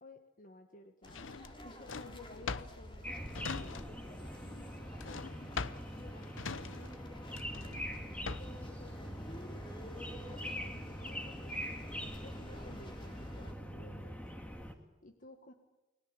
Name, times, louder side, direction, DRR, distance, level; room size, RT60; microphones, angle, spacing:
voice 1, 0.0-5.3 5.9-11.7 12.2-14.4 14.6-15.5, left 2 dB, 45° left, 6 dB, 1.6 m, -56 dB
sound 1, 1.0-13.5, left 1 dB, 25° left, 3.7 m, -51 dB
Drawer open or close, 1.1-4.2 4.4-8.7, left 5 dB, 85° left, 0.8 m, -43 dB
sound 2, 3.0-14.7, equal, 5° left, 2.2 m, -43 dB
29.5 x 20.5 x 9.0 m, 1.1 s
head